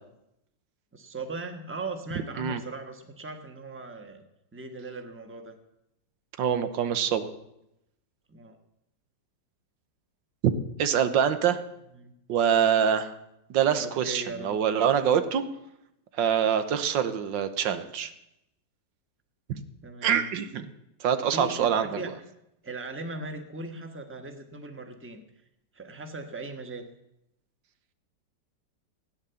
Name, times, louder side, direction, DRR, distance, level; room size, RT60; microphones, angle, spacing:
voice 1, 0.9-4.2 4.5-5.6 8.3-8.6 12.0-12.1 13.8-14.6 19.8-20.3 21.3-22.1 22.6-25.2 25.7-26.9, right 2 dB, 10° right, 5 dB, 1.2 m, -38 dB
voice 2, 6.4-7.3 10.8-11.6 12.3-13.1 13.5-15.4 16.2-18.1 19.5-19.6 20.0-20.7 21.0-22.0, right 8 dB, 85° right, 10 dB, 1.7 m, -25 dB
16.5 x 9.6 x 7.0 m, 0.85 s
omnidirectional pair, 2.0 m